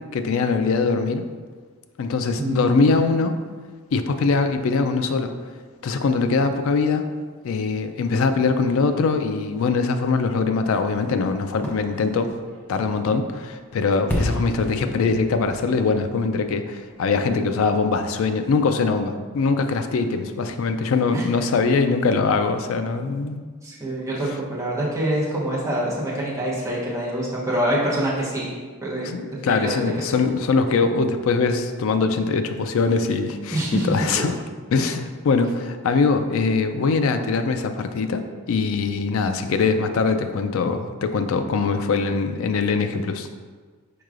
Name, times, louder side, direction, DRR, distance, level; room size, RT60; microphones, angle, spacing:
voice 1, 0.1-1.2 2.0-3.4 3.9-5.3 5.8-7.1 7.4-12.3 12.7-23.4 29.0-34.3 34.7-43.3, left 4 dB, 70° left, 8 dB, 0.3 m, -22 dB
voice 2, 2.4-2.9 21.1-21.2 23.6-28.5 28.8-29.1 29.4-29.8 33.5-34.2, right 1 dB, 15° right, -7 dB, 0.8 m, -25 dB
Fireworks, 11.5-17.3 17.7-17.8, equal, 10° left, 0.5 m, -33 dB
4.7 x 4.6 x 2.5 m, 1.5 s
head